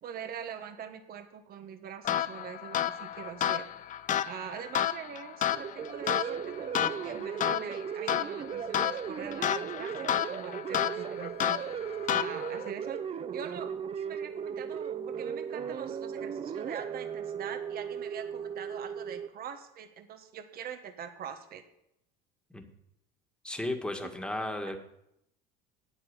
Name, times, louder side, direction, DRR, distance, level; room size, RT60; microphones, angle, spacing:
voice 1, 0.0-3.6 4.2-11.8 12.1-13.0 13.3-13.7 14.0-21.6 24.0-24.1, right 8 dB, 45° right, 8 dB, 1.4 m, -43 dB
sound 1, 2.0-12.7, left 10 dB, 40° left, 0.6 m, -32 dB
sound 2, 5.5-19.3, right 7 dB, 30° right, 0.6 m, -37 dB
voice 2, 23.4-24.8, left 1 dB, 5° left, 4 dB, 1.9 m, -34 dB
8.9 x 8.8 x 8.1 m, 0.79 s
supercardioid pair, 100°, 21 cm